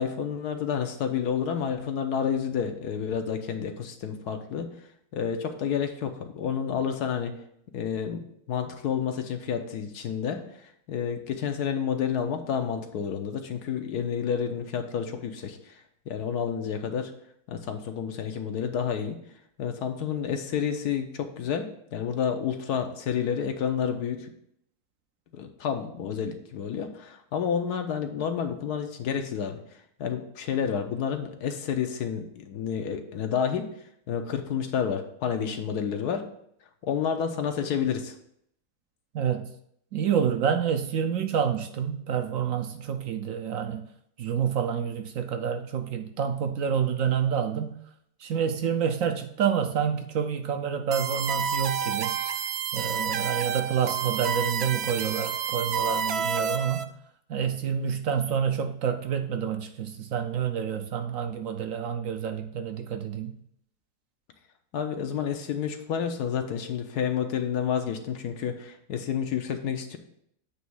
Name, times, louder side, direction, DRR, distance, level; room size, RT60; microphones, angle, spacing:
voice 1, 0.0-4.7 5.1-7.4 7.7-10.4 10.9-15.7 16.1-17.1 17.5-19.2 19.6-24.3 25.3-29.6 30.0-33.7 34.1-36.3 36.8-38.1 64.7-70.0, left 7 dB, 80° left, 6 dB, 1.3 m, -30 dB
voice 2, 39.1-39.5 39.9-43.9 44.2-47.8 48.2-52.2 52.7-56.9 57.3-63.4, right 7 dB, 65° right, 6 dB, 0.9 m, -28 dB
sound 1, 50.9-56.8, right 7 dB, 90° right, 0.5 m, -29 dB
8.2 x 3.1 x 6.1 m, 0.71 s
omnidirectional pair, 1.7 m